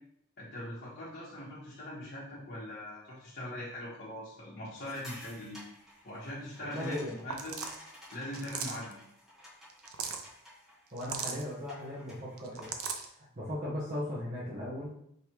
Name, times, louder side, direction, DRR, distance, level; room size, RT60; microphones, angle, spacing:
voice 1, 0.4-5.6 6.0-7.6 8.1-9.0, left 1 dB, 45° left, -8 dB, 1.3 m, -41 dB
sound 1, 4.8-12.9, left 1 dB, ahead, 1.4 m, -53 dB
voice 2, 6.7-7.2 10.9-12.8 13.1-15.0, left 1 dB, 40° right, -8 dB, 1.1 m, -37 dB
sound 2, 7.3-7.8 8.3-8.9 9.7-10.2 11.0-11.4 12.4-13.1, right 6 dB, 85° right, 0.5 m, -37 dB
5.2 x 3.3 x 3.0 m, 0.73 s
head